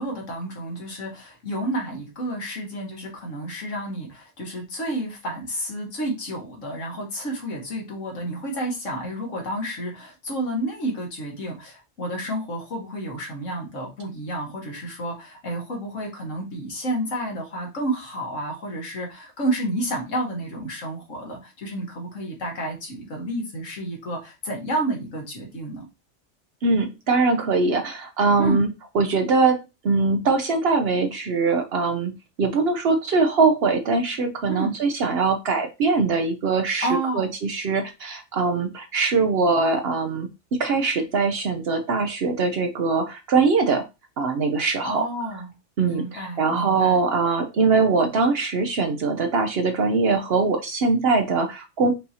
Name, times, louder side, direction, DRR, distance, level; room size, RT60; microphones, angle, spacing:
voice 1, 0.0-25.9 28.4-28.6 34.5-34.7 36.8-37.3 44.8-45.5 45.8-47.0, right 1 dB, 75° left, 0 dB, 1.8 m, -30 dB
voice 2, 26.6-28.7 28.9-29.6 29.8-32.1 32.4-36.9 37.1-43.9 44.2-45.0 45.8-51.9, right 4 dB, 60° right, 6 dB, 0.8 m, -22 dB
5.4 x 2.7 x 2.8 m, 0.25 s
omnidirectional pair, 1.3 m